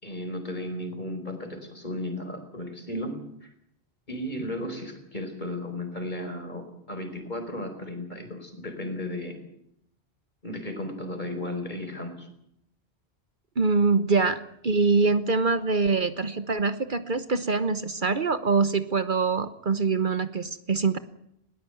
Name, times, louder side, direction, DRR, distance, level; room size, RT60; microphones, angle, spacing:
voice 1, 0.0-3.2 3.4-3.5 4.1-9.4 10.4-12.3, left 1 dB, 45° left, 7 dB, 4.9 m, -34 dB
voice 2, 13.6-21.0, right 4 dB, 50° right, 12 dB, 1.2 m, -24 dB
20.5 x 19.0 x 9.2 m, 0.76 s
omnidirectional pair, 1.1 m